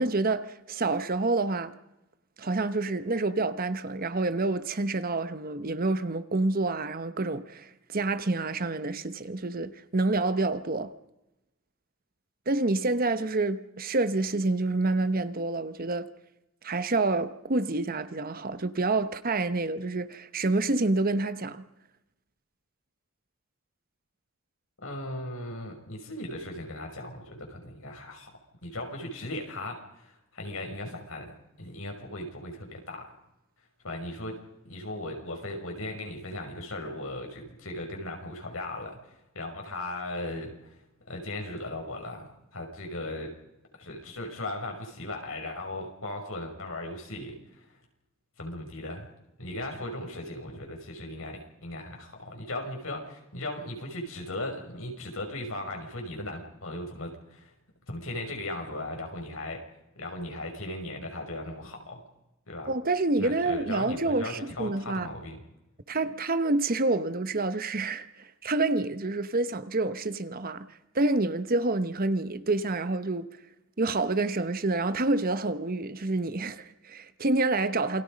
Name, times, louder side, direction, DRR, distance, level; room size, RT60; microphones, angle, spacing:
voice 1, 0.0-1.7 2.4-10.9 12.5-16.1 16.6-21.6 62.7-65.1 65.9-70.7 70.9-73.3 73.8-78.0, right 2 dB, 45° right, 1.1 m, -28 dB
voice 2, 24.8-28.3 28.6-33.1 33.8-34.4 34.6-40.7 41.1-43.3 43.8-47.6 48.4-49.1 49.4-57.5 57.9-59.6 60.0-62.0 62.5-62.7 63.2-65.4, left 1 dB, 75° left, 5.9 m, -37 dB
28.5 x 21.0 x 5.3 m
head